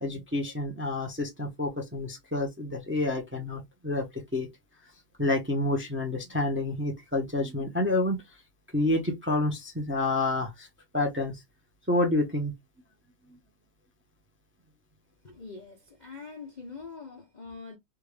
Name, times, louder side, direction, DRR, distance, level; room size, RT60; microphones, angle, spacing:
voice 1, 0.0-4.5 5.2-8.2 8.7-10.7 10.9-11.3 11.9-12.5 13.3-13.4, left 2 dB, 15° right, 0.4 m, -28 dB
voice 2, 15.2-17.8, left 4 dB, 80° left, 0.4 m, -44 dB
3.5 x 2.5 x 3.2 m
omnidirectional pair, 1.9 m